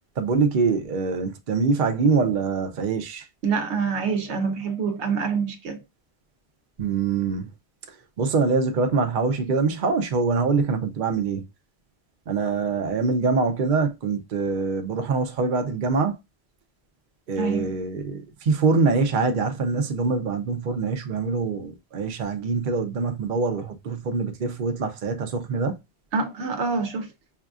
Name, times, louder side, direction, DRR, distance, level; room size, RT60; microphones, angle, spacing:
voice 1, 0.2-3.3 6.8-7.5 7.9-11.4 12.3-16.2 17.3-25.8, right 4 dB, 50° right, 0.7 m, -24 dB
voice 2, 3.4-5.8 17.4-17.7 26.1-27.1, right 5 dB, 90° right, 1.1 m, -26 dB
5.4 x 2.4 x 2.4 m
omnidirectional pair, 1.1 m